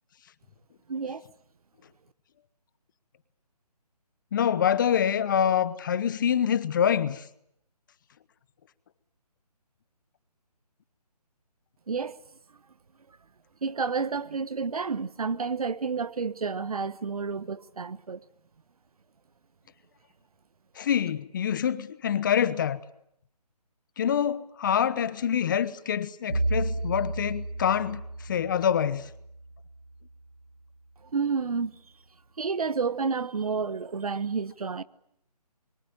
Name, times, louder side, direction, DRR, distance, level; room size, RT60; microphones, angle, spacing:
voice 1, 0.9-1.3 11.9-12.2 13.6-18.2 31.1-31.8 32.4-34.8, right 5 dB, 60° right, 1.2 m, -30 dB
voice 2, 4.3-7.2 20.8-22.8 24.0-29.1, left 8 dB, 30° left, 1.0 m, -26 dB
Bowed string instrument, 26.3-30.5, right 2 dB, 80° right, 4.4 m, -33 dB
27.0 x 23.0 x 8.8 m
figure-of-eight pair, 155°, 21 cm